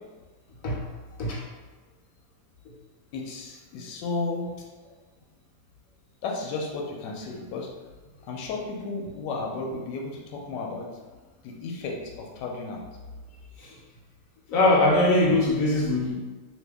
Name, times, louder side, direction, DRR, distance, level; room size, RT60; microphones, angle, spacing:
voice 1, 3.1-4.5 6.2-7.7 8.3-10.9 11.4-12.8, left 3 dB, 90° left, 0 dB, 1.2 m, -33 dB
voice 2, 14.5-16.1, left 2 dB, 60° left, -3 dB, 1.0 m, -21 dB
2.8 x 2.7 x 3.4 m, 1.3 s
omnidirectional pair, 1.8 m